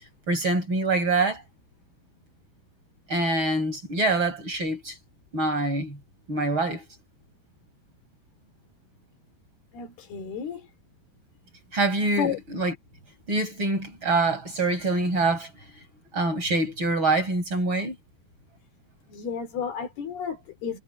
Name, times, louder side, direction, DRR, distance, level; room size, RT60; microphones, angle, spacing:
voice 1, 0.3-1.4 3.1-4.9 5.3-6.0 6.3-6.8 11.7-12.7 13.3-15.5 16.1-17.9, right 2 dB, 30° right, 6.2 m, -25 dB
voice 2, 9.7-10.7 12.2-12.4 19.1-20.8, left 7 dB, 65° left, 4.7 m, -32 dB
omnidirectional pair, 4.9 m